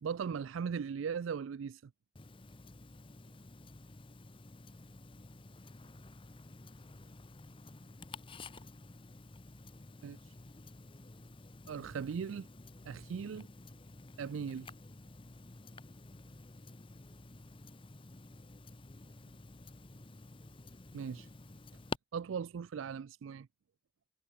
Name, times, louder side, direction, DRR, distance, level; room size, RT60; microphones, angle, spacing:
voice 1, 0.0-1.9 10.0-10.2 11.7-12.5 12.8-13.5 14.2-14.7 20.9-21.3 22.1-23.5, right 6 dB, 75° right, 0.4 m, -38 dB
Tick-tock, 2.2-22.0, left 2 dB, 25° left, 0.8 m, -51 dB
voice 2, 3.3-4.1 5.5-7.2 7.5-8.8 9.4-9.8 12.9-13.1 19.1-19.6, right 1 dB, 30° right, 4.5 m, -74 dB
head